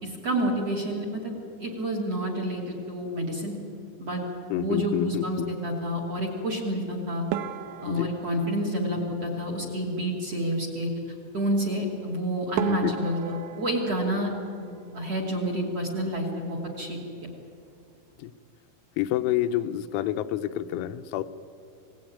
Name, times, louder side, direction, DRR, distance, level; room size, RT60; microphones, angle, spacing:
voice 1, 0.0-3.5 4.0-4.2 4.6-7.2 7.8-10.9 11.3-14.3 14.6-17.3, equal, 40° right, 2 dB, 2.7 m, -29 dB
voice 2, 4.5-5.5 7.8-8.1 12.8-12.9 18.2-18.3 19.0-21.2, left 12 dB, 90° left, 9 dB, 3.6 m, -28 dB
sound 1, 7.3-9.8 12.0-12.1 12.6-15.3 15.6-16.4 16.7-16.9 17.2-17.3 17.9-18.2, right 11 dB, 85° right, 2.4 m, -36 dB
27.0 x 18.0 x 9.4 m, 2.6 s
omnidirectional pair, 6.0 m